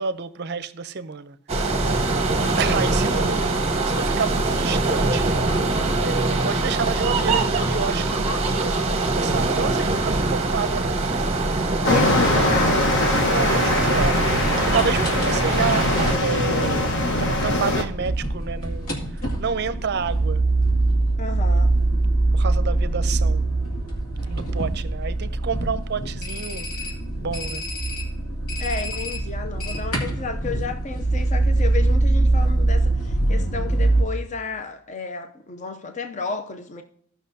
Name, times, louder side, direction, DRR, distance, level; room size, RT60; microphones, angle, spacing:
voice 1, 0.0-1.4 2.6-5.4 6.0-8.7 9.1-11.0 13.3-20.4 22.3-23.5 24.3-26.7 27.2-27.6, right 5 dB, 50° right, 0.6 m, -29 dB
sound 1, 1.5-16.2, right 2 dB, 30° right, 0.9 m, -23 dB
voice 2, 2.6-2.9 11.9-13.0 21.2-21.7 28.6-36.8, left 4 dB, 35° left, 0.6 m, -32 dB
sound 2, 11.8-17.8, left 1 dB, 55° left, 1.2 m, -22 dB
sound 3, 14.4-34.0, right 2 dB, 75° left, 2.3 m, -23 dB
16.0 x 5.9 x 2.7 m
head